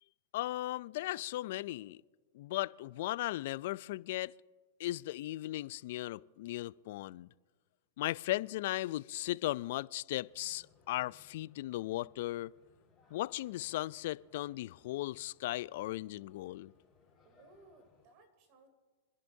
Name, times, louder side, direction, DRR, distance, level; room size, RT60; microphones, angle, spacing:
voice 1, 0.3-2.0 2.3-4.3 4.8-7.3 8.0-12.5 13.1-16.7, left 16 dB, 60° left, 0.3 m, -37 dB
sound 1, 10.3-18.1, left 6 dB, 20° left, 4.5 m, -67 dB
voice 2, 17.2-18.7, right 3 dB, 50° right, 2.9 m, -61 dB
26.5 x 11.0 x 2.7 m
hypercardioid pair, 125°, 0 cm